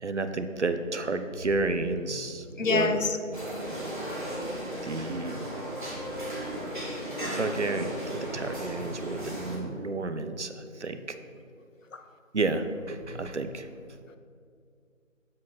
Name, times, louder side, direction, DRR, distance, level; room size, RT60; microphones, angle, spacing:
voice 1, 0.0-3.1 4.8-5.5 7.3-7.9 8.2-11.2 12.3-13.7, right 3 dB, 60° right, 9 dB, 0.6 m, -31 dB
voice 2, 2.1-3.2 8.8-8.9 11.0-11.1 11.9-12.0 13.0-13.6 14.1-14.2, left 4 dB, 70° left, 7 dB, 0.7 m, -31 dB
sound 1, 3.3-9.6, equal, 35° right, 1.4 m, -35 dB
7.5 x 4.0 x 6.0 m, 2.3 s
figure-of-eight pair, 170°, 40 cm